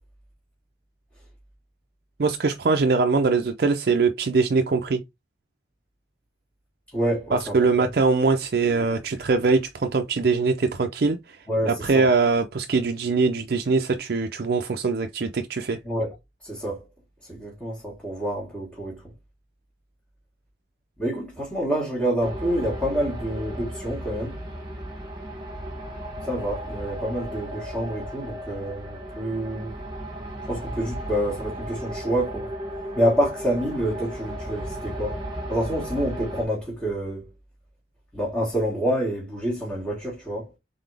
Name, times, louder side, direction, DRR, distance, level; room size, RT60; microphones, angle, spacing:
voice 1, 2.2-5.0 7.3-11.4 11.6-15.8, right 4 dB, 55° right, 0.4 m, -22 dB
voice 2, 6.9-7.9 11.5-12.1 15.8-16.1 16.4-16.9 17.3-19.0 21.0-24.4 26.2-29.7 30.4-32.5 32.9-35.2 35.5-37.3 38.1-40.5, equal, 10° left, 1.5 m, -27 dB
sound 1, 22.2-36.4, right 1 dB, 25° right, 1.4 m, -35 dB
4.0 x 3.7 x 3.3 m
head